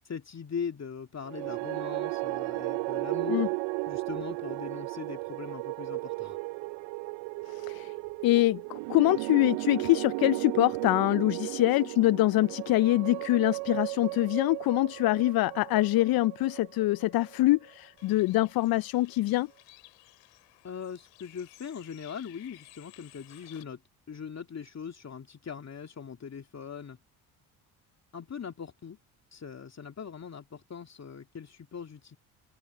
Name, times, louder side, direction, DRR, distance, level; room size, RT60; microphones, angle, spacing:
voice 1, 0.0-3.5 3.9-6.4 20.6-23.8 24.1-27.0 28.1-29.0 29.3-32.2, left 6 dB, 35° left, 2.5 m, -40 dB
sound 1, 1.2-17.5, right 28 dB, 70° right, 0.7 m, -35 dB
voice 2, 7.5-7.9 8.2-19.5, left 17 dB, 55° left, 0.6 m, -25 dB
Bird, 18.0-23.6, left 23 dB, 75° left, 2.9 m, -56 dB
hypercardioid pair, 55°, 45 cm